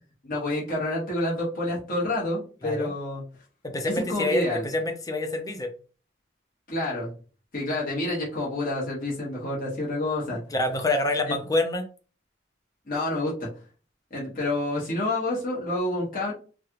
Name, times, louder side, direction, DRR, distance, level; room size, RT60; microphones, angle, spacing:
voice 1, 0.2-3.2 4.1-4.6 6.7-7.1 7.5-10.4 11.3-11.4 12.9-13.5 14.1-16.3, left 1 dB, 45° left, -5 dB, 1.3 m, -28 dB
voice 2, 3.6-5.7 10.5-11.8, left 2 dB, 20° left, 5 dB, 0.5 m, -26 dB
3.2 x 2.4 x 2.9 m, 0.37 s
head